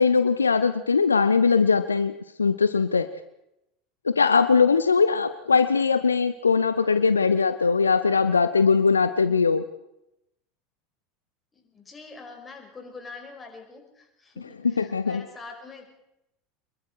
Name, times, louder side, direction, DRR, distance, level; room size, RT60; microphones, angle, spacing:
voice 1, 0.0-2.1 2.4-3.1 4.0-9.7 14.6-15.2, left 5 dB, 80° left, 12 dB, 0.8 m, -21 dB
voice 2, 11.5-15.8, left 4 dB, 20° left, 3 dB, 5.8 m, -44 dB
26.0 x 22.0 x 4.9 m, 0.85 s
figure-of-eight pair, 75°, 0 cm